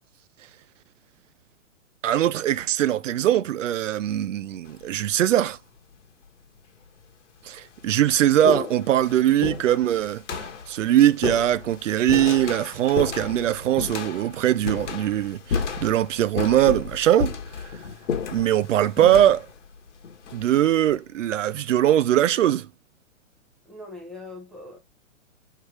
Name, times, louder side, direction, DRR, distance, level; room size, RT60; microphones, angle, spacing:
voice 1, 2.0-5.6 7.5-10.2 10.7-17.3 17.6-17.7 18.3-19.5 20.3-22.7, right 12 dB, 75° right, 0.5 m, -21 dB
sound 1, 4.7-5.1 6.0-6.1 7.0-7.1 7.5-21.0, left 6 dB, 65° left, 1.3 m, -33 dB
voice 2, 23.7-24.8, left 2 dB, ahead, 0.6 m, -41 dB
3.3 x 3.3 x 4.5 m
hypercardioid pair, 140°, 38 cm